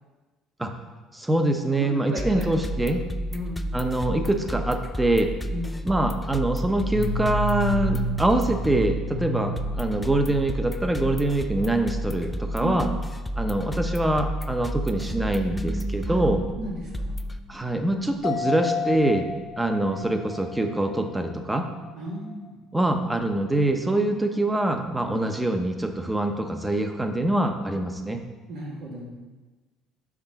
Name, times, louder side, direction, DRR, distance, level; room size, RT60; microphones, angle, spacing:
voice 1, 1.1-3.0 3.7-5.3 5.8-12.9 13.4-16.4 17.5-19.3 19.6-21.7 22.7-28.2, right 1 dB, 10° right, 5 dB, 0.7 m, -24 dB
voice 2, 1.8-2.5 3.3-3.6 5.5-5.8 12.6-12.8 16.0-16.2 16.6-17.2 21.9-22.5 25.1-25.3 28.5-29.1, right 1 dB, 85° right, -6 dB, 1.4 m, -34 dB
sound 1, 2.2-17.4, equal, 15° left, 0.3 m, -31 dB
sound 2, 6.8-11.3 11.6-11.8 12.1-12.4 12.6-12.9 13.6-13.7 14.7-17.9, equal, 75° left, 1.0 m, -34 dB
sound 3, 18.2-21.9 22.3-22.4, left 5 dB, 90° left, 1.6 m, -32 dB
6.0 x 3.9 x 5.6 m, 1.3 s
supercardioid pair, 90°, 0 cm